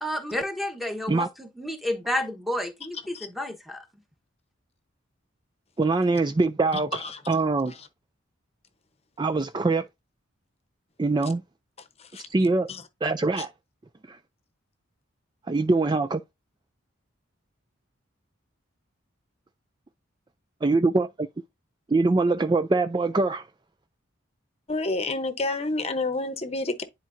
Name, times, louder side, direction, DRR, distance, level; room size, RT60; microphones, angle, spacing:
voice 1, 0.0-3.8, left 1 dB, ahead, 1.2 m, -31 dB
voice 2, 5.8-7.7 9.2-9.9 11.0-11.4 12.3-12.7 13.0-13.5 14.1-14.2 15.5-16.2 20.6-21.3 21.9-23.5, right 3 dB, 20° right, 0.3 m, -23 dB
voice 3, 6.7-7.2 12.1-12.2 12.7-12.8 13.4-13.5 24.7-26.8, left 2 dB, 30° left, 0.9 m, -29 dB
10.5 x 4.5 x 2.6 m
head